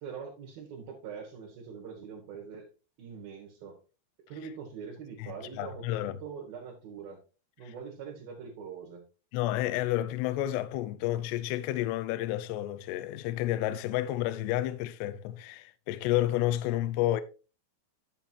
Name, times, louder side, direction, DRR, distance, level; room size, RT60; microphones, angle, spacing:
voice 1, 0.0-2.7 3.0-3.8 4.3-7.2 7.6-9.0, right 6 dB, 60° right, 3.0 m, -43 dB
voice 2, 5.2-6.2 7.7-7.8 9.3-17.2, left 14 dB, 85° left, 2.4 m, -30 dB
10.5 x 7.2 x 2.8 m
omnidirectional pair, 5.6 m